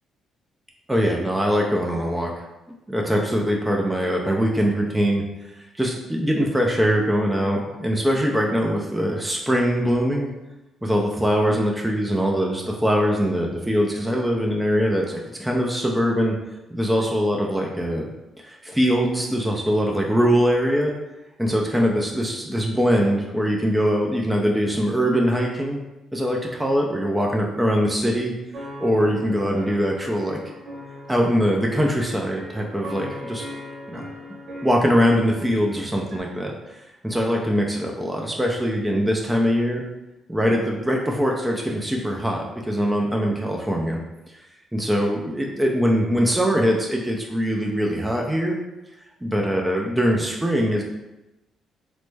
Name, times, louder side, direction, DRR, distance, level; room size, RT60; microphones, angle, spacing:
voice 1, 0.9-2.3 2.9-5.2 5.6-10.3 10.8-16.4 16.7-18.1 18.4-20.9 21.4-25.8 26.1-28.3 28.8-30.4 31.1-33.5 33.9-34.1 34.6-36.5 37.0-39.8 40.3-44.0 44.7-48.5 49.2-50.8, equal, 5° right, -1 dB, 0.4 m, -22 dB
sound 1, 28.5-36.2, left 1 dB, 55° right, 1.0 m, -38 dB
3.0 x 2.1 x 3.2 m, 1.0 s
cardioid pair, 90°, 0 cm